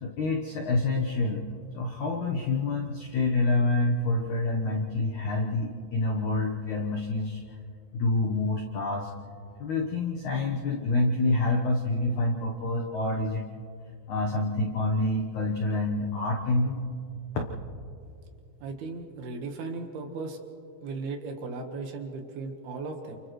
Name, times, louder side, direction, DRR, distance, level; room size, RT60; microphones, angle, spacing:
voice 1, 0.0-1.4 1.7-7.4 7.9-9.1 9.6-13.5 14.1-16.8, left 2 dB, 75° left, 0 dB, 1.7 m, -27 dB
voice 2, 18.6-20.4 20.8-23.2, right 3 dB, 65° right, 4 dB, 3.1 m, -36 dB
29.5 x 29.5 x 3.2 m, 2.4 s
omnidirectional pair, 5.3 m